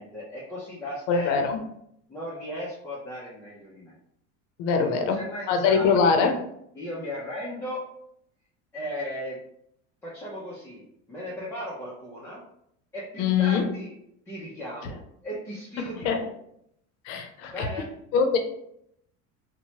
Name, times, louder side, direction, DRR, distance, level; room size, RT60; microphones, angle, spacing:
voice 1, 0.0-1.5 2.1-4.0 4.8-5.9 6.1-6.2 6.8-7.8 8.7-9.4 10.0-10.8 11.1-12.4 12.9-13.9 14.3-16.3 17.4-17.9, equal, 5° left, -7 dB, 0.4 m, -36 dB
voice 2, 1.1-1.6 4.6-5.2 5.5-6.4 13.2-13.7 16.0-16.2 17.1-17.7 18.1-18.4, left 5 dB, 80° left, 5 dB, 0.6 m, -22 dB
3.0 x 2.1 x 2.8 m, 0.73 s
cardioid pair, 145°, 36 cm